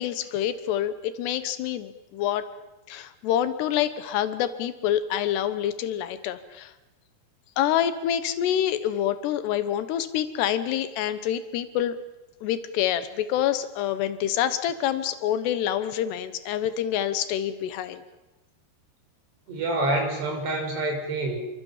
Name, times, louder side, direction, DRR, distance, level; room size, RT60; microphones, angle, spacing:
voice 1, 0.0-2.5 2.9-6.7 7.6-12.0 12.4-18.0, left 10 dB, 85° left, 12 dB, 3.3 m, -27 dB
voice 2, 19.5-21.4, right 2 dB, 90° right, 2 dB, 7.9 m, -27 dB
29.5 x 24.0 x 7.4 m, 1.0 s
omnidirectional pair, 4.7 m